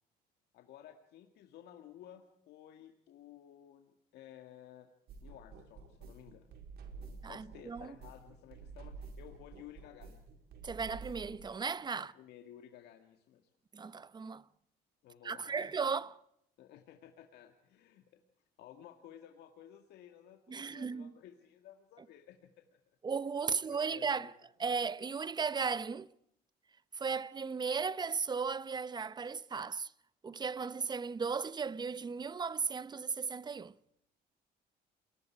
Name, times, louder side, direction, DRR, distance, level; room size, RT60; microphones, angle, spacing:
voice 1, 0.5-4.9 5.2-10.2 12.0-13.5 15.0-15.7 16.6-18.2 18.6-22.8 23.5-24.3, left 11 dB, 80° left, 2.2 m, -55 dB
sound 1, 5.1-11.4, right 4 dB, 70° right, 4.4 m, -50 dB
voice 2, 7.2-7.9 10.6-12.1 13.7-14.4 15.2-16.2 20.5-21.1 23.0-24.3 24.6-26.1 26.9-29.9 30.2-33.7, right 5 dB, 25° right, 0.8 m, -36 dB
29.0 x 22.0 x 4.7 m
cardioid pair, 110°, 17 cm